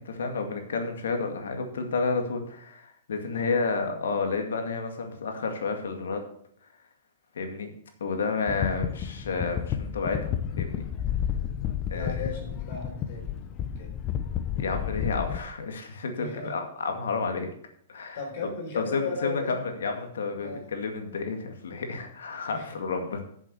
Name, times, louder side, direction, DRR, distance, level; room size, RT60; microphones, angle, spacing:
voice 1, 0.0-6.2 7.3-7.7 8.0-10.9 11.9-12.3 14.5-17.5 17.9-18.2 18.8-23.2, left 4 dB, 85° left, 4 dB, 2.1 m, -31 dB
voice 2, 3.2-3.6 11.8-13.4 13.8-14.0 16.2-16.6 18.1-19.6 20.4-20.6 22.5-22.8, left 4 dB, 60° left, 1 dB, 4.0 m, -36 dB
sound 1, 8.5-15.4, left 9 dB, 30° left, 0.9 m, -31 dB
8.4 x 7.3 x 6.6 m, 0.66 s
hypercardioid pair, 130°, 0 cm